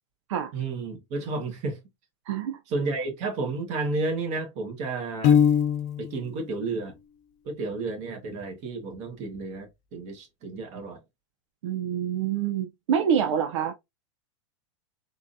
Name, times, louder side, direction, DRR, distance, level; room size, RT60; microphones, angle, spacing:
voice 1, 0.5-1.8 2.7-5.4 6.0-7.0 7.4-11.0, right 3 dB, 45° right, 1.4 m, -32 dB
voice 2, 2.3-2.6 11.6-13.7, right 8 dB, 75° right, 0.5 m, -26 dB
Piano, 5.2-6.2, left 8 dB, 45° left, 0.5 m, -20 dB
3.7 x 2.6 x 2.6 m
hypercardioid pair, 120°, 16 cm